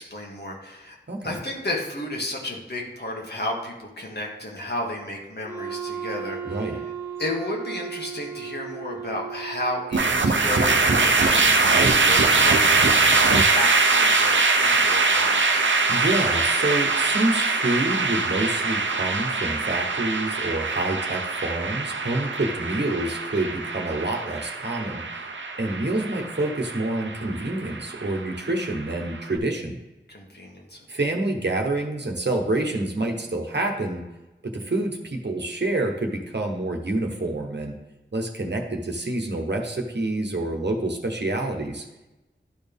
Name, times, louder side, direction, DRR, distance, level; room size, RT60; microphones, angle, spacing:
voice 1, 0.0-1.0 1.2-6.8 7.2-15.6 30.1-30.8, left 1 dB, 60° left, -2 dB, 1.7 m, -33 dB
Wind instrument woodwind instrument, 5.4-10.2, right 7 dB, 10° right, 1.7 m, -35 dB
voice 2, 6.4-6.8 15.9-25.0 25.6-29.8 30.9-34.0 34.4-37.7 38.1-41.8, right 2 dB, 65° right, 2 dB, 1.1 m, -27 dB
sound 1, 9.9-29.2, right 3 dB, 80° right, 0.7 m, -22 dB
11.5 x 4.3 x 3.5 m, 1.0 s
wide cardioid pair, 45°, 19 cm